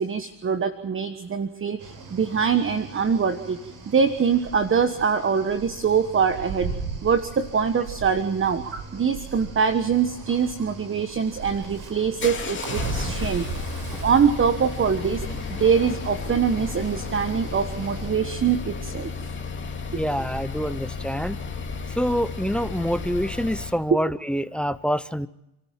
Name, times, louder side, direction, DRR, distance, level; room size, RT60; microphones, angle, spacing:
voice 1, 0.0-3.6 3.9-6.7 7.0-13.4 14.0-15.2 15.6-19.1 19.9-20.0, right 6 dB, 30° right, 10 dB, 1.4 m, -23 dB
Cricket / Waves surf, 1.8-18.1, right 3 dB, 55° right, 6.0 m, -41 dB
sound 1, 3.0-3.3 4.0-16.5 16.8-17.0 17.3-18.9, right 6 dB, 85° right, 5.2 m, -39 dB
sound 2, 11.3-23.8, left 4 dB, 25° left, 2.6 m, -33 dB
voice 2, 19.9-21.4 22.0-25.3, equal, ahead, 16 dB, 0.8 m, -26 dB
28.5 x 13.5 x 7.4 m, 0.87 s
supercardioid pair, 90°, 42 cm